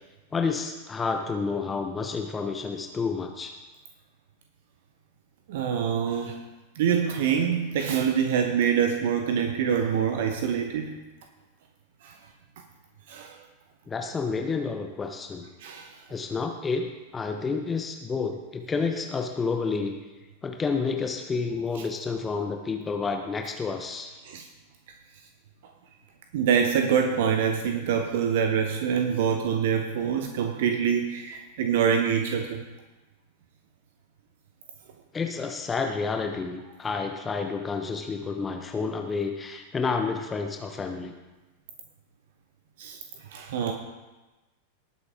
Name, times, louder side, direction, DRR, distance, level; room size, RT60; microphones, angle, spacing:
voice 1, 0.3-3.5 13.9-15.5 16.1-20.0 20.4-24.1 35.1-41.1, left 4 dB, 15° left, 4 dB, 1.1 m, -30 dB
voice 2, 5.5-6.4 6.7-10.9 12.0-12.2 13.1-13.4 15.6-16.0 24.2-24.5 26.3-32.6 42.8-43.7, right 7 dB, 55° right, 4 dB, 1.1 m, -25 dB
19.5 x 8.5 x 3.6 m, 1.1 s
figure-of-eight pair, 90°, 0 cm